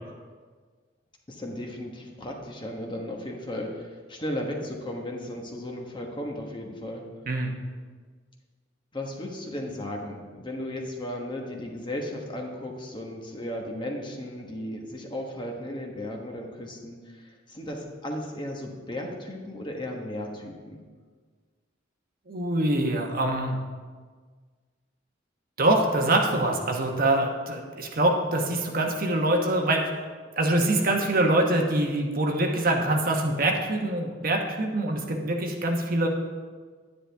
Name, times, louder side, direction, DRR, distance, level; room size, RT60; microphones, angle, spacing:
voice 1, 1.3-7.0 8.9-20.8, left 1 dB, 25° left, 1 dB, 1.2 m, -35 dB
voice 2, 22.3-23.6 25.6-29.8 30.4-36.1, right 1 dB, 50° right, 2 dB, 1.1 m, -24 dB
10.0 x 10.0 x 3.4 m, 1.5 s
head